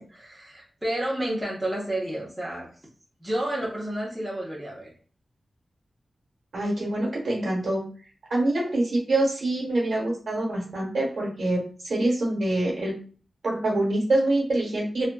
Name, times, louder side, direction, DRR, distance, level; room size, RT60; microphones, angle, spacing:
voice 1, 0.0-2.7 3.2-4.9 8.6-8.8, right 1 dB, 5° right, -5 dB, 0.6 m, -30 dB
voice 2, 6.5-7.8 8.3-12.9 13.4-15.1, right 1 dB, 55° right, -3 dB, 1.0 m, -25 dB
2.6 x 2.3 x 2.2 m, 0.41 s
wide cardioid pair, 170°, 0 cm